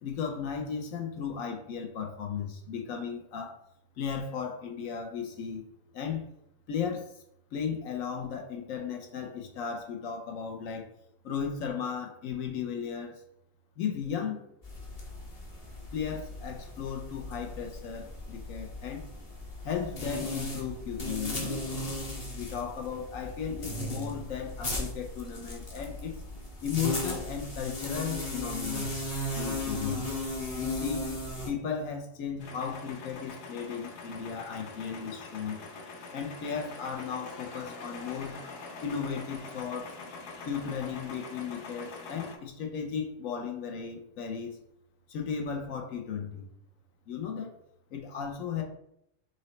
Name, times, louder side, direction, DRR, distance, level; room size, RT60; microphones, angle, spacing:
voice 1, 0.0-3.6 4.0-5.6 5.9-6.3 6.7-7.1 7.5-10.9 11.2-13.2 13.8-14.4 15.9-19.0 19.6-21.6 22.3-26.2 26.6-29.0 29.3-30.0 30.5-31.1 31.5-35.6 36.1-38.4 38.8-40.0 40.4-44.6 45.1-46.5 47.1-47.5 47.9-48.6, left 7 dB, 80° left, 3 dB, 1.1 m, -35 dB
sound 1, 14.6-31.5, left 1 dB, 35° left, 0.8 m, -36 dB
sound 2, 32.4-42.4, left 3 dB, 60° left, 0.9 m, -44 dB
5.9 x 2.8 x 3.1 m, 0.76 s
omnidirectional pair, 1.4 m